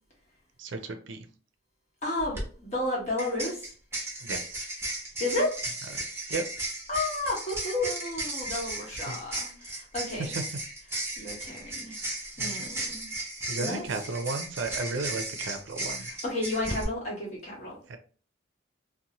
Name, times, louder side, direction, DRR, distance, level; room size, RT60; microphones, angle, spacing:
voice 1, 0.6-1.2 4.2-4.7 6.3-6.4 9.1-9.2 10.2-10.4 12.4-12.7 13.5-16.1 17.9-18.0, right 3 dB, 75° right, 0.4 m, -34 dB
voice 2, 2.0-3.7 5.2-5.6 6.9-10.3 11.2-12.0 12.4-13.1 13.6-13.8 16.0-17.8, left 2 dB, 35° left, 1.2 m, -32 dB
sound 1, 2.2-2.4 3.2-16.8, right 1 dB, 15° right, 0.8 m, -35 dB
2.6 x 2.1 x 2.9 m
head